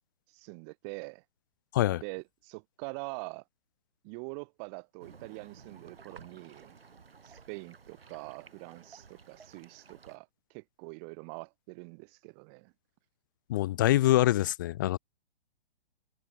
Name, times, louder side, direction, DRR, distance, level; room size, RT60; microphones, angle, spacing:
voice 1, 0.3-1.2 1.9-3.4 4.0-6.7 7.2-12.7, right 38 dB, 30° right, 1.5 m, -44 dB
sound 1, 5.0-10.2, right 5 dB, 75° right, 2.3 m, -54 dB
voice 2, 13.5-15.0, left 15 dB, 20° left, 0.4 m, -25 dB
figure-of-eight pair, 120°, 30 cm